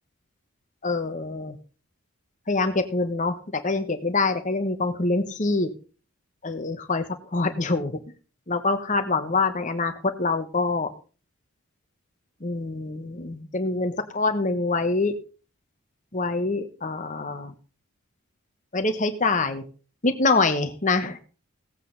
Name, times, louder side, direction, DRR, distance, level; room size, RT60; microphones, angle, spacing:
voice 1, 0.8-1.6 2.5-5.7 6.4-8.0 8.5-10.9 12.4-15.1 16.1-17.5 18.7-19.6 20.0-21.2, left 3 dB, 35° left, 7 dB, 1.1 m, -25 dB
16.5 x 8.3 x 3.9 m, 0.37 s
head